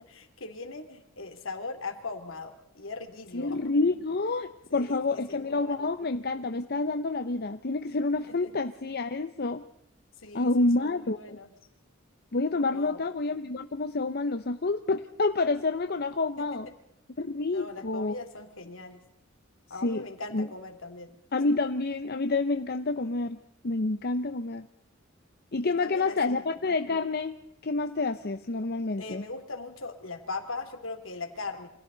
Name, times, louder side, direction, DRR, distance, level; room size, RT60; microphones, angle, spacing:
voice 1, 0.0-3.6 4.7-5.8 8.3-8.5 10.2-11.5 12.7-13.0 16.4-16.7 17.5-19.0 19.7-21.2 25.7-26.5 29.0-31.7, left 3 dB, 70° left, 6 dB, 2.9 m, -40 dB
voice 2, 3.3-9.6 10.3-11.4 12.3-16.7 17.2-18.1 19.8-20.0 20.3-20.5 21.3-23.4 23.6-24.7 25.5-27.4 27.6-29.2, left 3 dB, 50° left, 9 dB, 0.8 m, -28 dB
29.0 x 25.5 x 4.0 m, 0.75 s
head